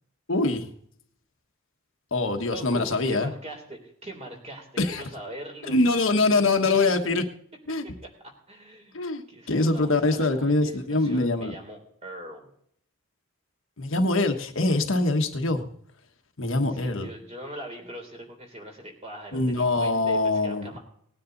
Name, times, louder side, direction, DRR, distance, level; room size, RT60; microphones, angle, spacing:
voice 1, 0.3-0.7 2.1-3.3 4.8-5.0 5.7-7.2 7.7-7.8 8.9-11.5 13.8-15.6 16.4-17.1 19.3-20.7, left 2 dB, 65° left, 5 dB, 1.4 m, -24 dB
voice 2, 2.5-5.7 6.8-6.9 8.5-9.0 9.3-12.5 16.7-20.8, right 1 dB, 30° right, 2 dB, 3.5 m, -41 dB
19.0 x 9.8 x 4.0 m, 0.65 s
head